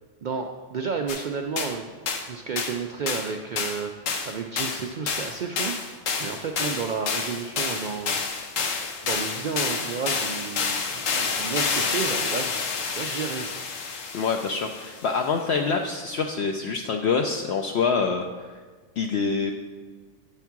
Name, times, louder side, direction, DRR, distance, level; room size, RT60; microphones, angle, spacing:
voice 1, 0.2-1.9 2.3-3.9 4.3-5.7 6.2-8.2 9.0-12.6 12.9-13.6, right 5 dB, 70° right, 3 dB, 0.4 m, -31 dB
sound 1, 1.1-1.2 1.6-1.7 2.1-2.3 2.6-2.8 3.1-3.3 3.6-15.1, left 5 dB, 85° left, 1.2 m, -29 dB
voice 2, 14.1-18.2 19.0-19.5, left 5 dB, 65° left, 2 dB, 0.8 m, -25 dB
9.8 x 3.6 x 5.9 m, 1.4 s
omnidirectional pair, 1.3 m